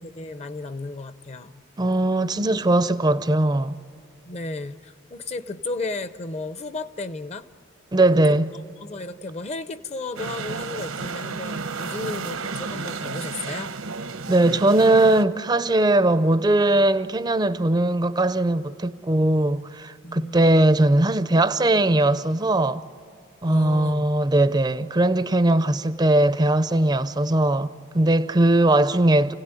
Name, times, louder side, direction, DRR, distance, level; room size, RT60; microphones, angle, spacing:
voice 1, 0.0-1.6 4.3-7.5 8.3-8.4 8.8-13.7 20.0-20.4 23.5-24.1, left 2 dB, 30° left, 0.7 m, -34 dB
voice 2, 1.8-3.7 7.9-8.5 14.3-22.8 23.4-29.3, right 2 dB, 20° right, 0.5 m, -20 dB
sound 1, 10.2-15.2, right 4 dB, 80° right, 1.1 m, -32 dB
29.5 x 17.0 x 9.7 m
head